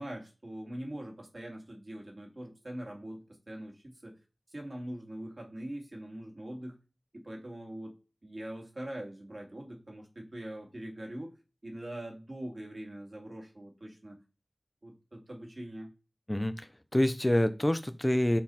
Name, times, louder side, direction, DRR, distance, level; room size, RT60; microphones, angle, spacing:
voice 1, 0.0-4.2 4.5-6.8 7.1-8.0 8.2-11.3 11.6-14.2 14.8-15.9, right 1 dB, 45° right, 0 dB, 2.0 m, -42 dB
voice 2, 16.3-18.4, left 1 dB, 20° left, 10 dB, 0.5 m, -27 dB
6.2 x 4.0 x 4.2 m, 0.31 s
wide cardioid pair, 65°, 0 cm